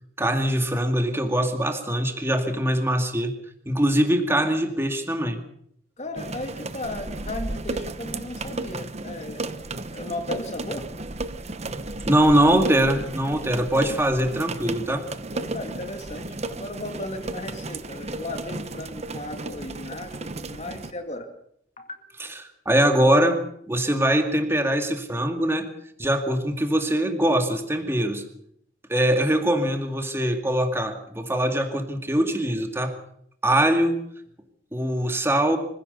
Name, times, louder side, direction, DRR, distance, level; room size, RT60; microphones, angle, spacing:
voice 1, 0.2-3.3 3.7-5.4 12.1-15.0 22.7-23.4 23.7-25.7 26.0-28.2 28.9-32.9 33.4-33.9 34.7-35.6, right 1 dB, 15° right, 5 dB, 2.2 m, -22 dB
voice 2, 6.0-9.5 9.9-10.9 15.3-21.3 21.8-22.0, left 1 dB, 40° left, 5 dB, 2.2 m, -35 dB
sound 1, 6.2-20.9, right 2 dB, 35° right, 1.1 m, -34 dB
24.5 x 16.5 x 6.9 m, 0.70 s
head